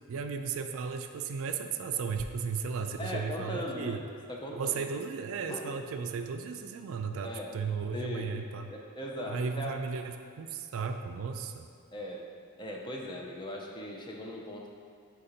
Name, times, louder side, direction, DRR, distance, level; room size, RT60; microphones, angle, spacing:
voice 1, 0.1-4.0 4.5-8.7 9.3-11.7, right 5 dB, 65° right, 6 dB, 0.4 m, -35 dB
voice 2, 3.0-4.9 5.5-5.7 7.2-7.6 7.9-8.4 8.7-9.8 11.9-14.7, left 1 dB, 20° left, -1 dB, 0.6 m, -39 dB
4.7 x 4.2 x 5.0 m, 2.2 s
head